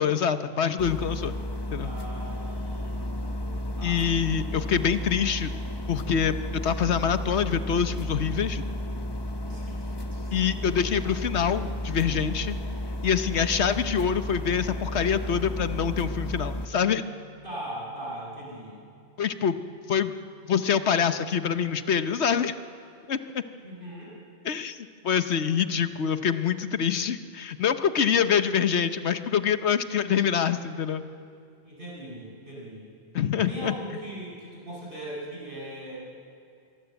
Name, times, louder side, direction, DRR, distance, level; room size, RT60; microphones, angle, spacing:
voice 1, 0.0-1.3 1.7-1.9 3.8-5.5 5.9-6.4 6.6-8.6 10.3-12.6 13.0-17.0 19.2-19.6 19.9-20.1 20.5-22.5 23.1-23.2 24.4-31.0 33.1-33.7, left 7 dB, 80° left, 10 dB, 1.2 m, -25 dB
sound 1, 0.8-16.7, left 1 dB, 25° left, 1.0 m, -33 dB
voice 2, 1.8-4.0 9.4-11.0 17.4-18.8 23.6-24.2 31.6-32.8 33.5-36.0, right 1 dB, 50° right, -5 dB, 8.1 m, -40 dB
Bass guitar, 15.3-21.6, right 5 dB, 80° right, 1.6 m, -51 dB
25.0 x 23.0 x 8.1 m, 2.4 s
omnidirectional pair, 1.1 m